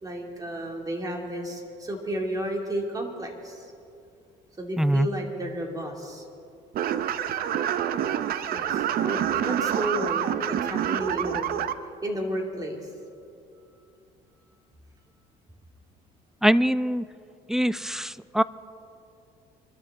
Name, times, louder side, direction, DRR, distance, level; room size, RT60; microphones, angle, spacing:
voice 1, 0.0-3.7 4.6-6.2 8.5-11.5 12.0-12.8, right 1 dB, 20° right, 1 dB, 2.6 m, -32 dB
voice 2, 4.8-5.1 16.4-17.0 17.5-18.4, equal, 5° right, 16 dB, 0.3 m, -23 dB
sound 1, 6.7-11.7, right 10 dB, 60° right, 0.7 m, -27 dB
24.5 x 12.5 x 3.7 m, 2.5 s
cardioid pair, 110°, 17 cm